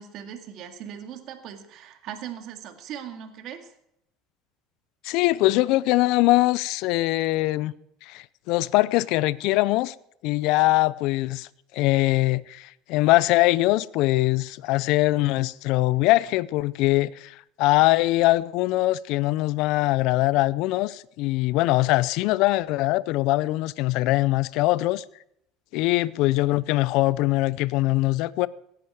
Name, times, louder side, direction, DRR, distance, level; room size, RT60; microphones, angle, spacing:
voice 1, 0.0-3.7, right 9 dB, 60° right, 2.1 m, -39 dB
voice 2, 5.0-7.7 8.0-9.9 10.2-11.5 11.7-25.0 25.7-28.5, left 18 dB, 70° left, 0.5 m, -22 dB
17.5 x 10.5 x 4.9 m
supercardioid pair, 105°, 0 cm